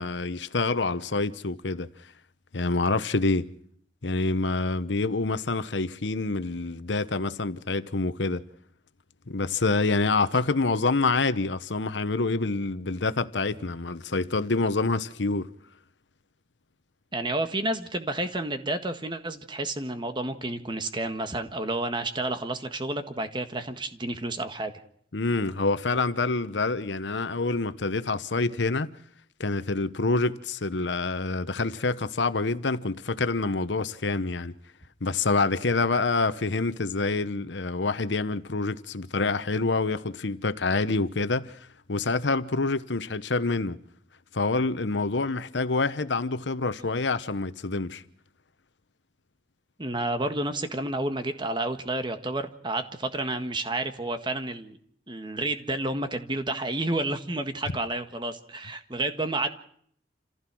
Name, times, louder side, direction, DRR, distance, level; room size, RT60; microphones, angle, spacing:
voice 1, 0.0-1.9 2.5-3.5 4.0-8.4 9.3-15.5 25.1-28.9 29.4-34.5 35.0-43.8 44.3-48.0, left 3 dB, 85° left, 1.0 m, -27 dB
voice 2, 17.1-24.7 49.8-54.8 55.1-59.5, right 2 dB, 25° right, 1.6 m, -30 dB
28.0 x 15.5 x 6.2 m
head